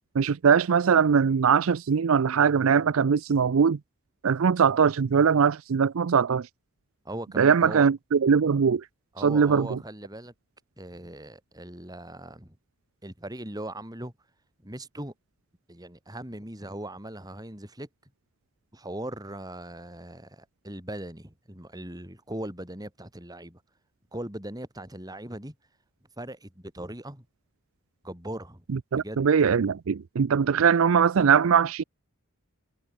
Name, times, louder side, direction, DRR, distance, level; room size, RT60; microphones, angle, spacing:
voice 1, 0.2-3.8 4.2-6.5 7.4-8.8 9.2-9.8 28.9-31.8, right 6 dB, 70° right, 0.5 m, -21 dB
voice 2, 7.0-7.9 9.1-10.3 10.8-12.6 13.0-14.1 14.6-15.1 15.7-17.9 18.7-23.6 24.1-25.5 26.2-27.3 28.0-28.6 29.0-29.3, right 1 dB, 15° right, 4.0 m, -39 dB
head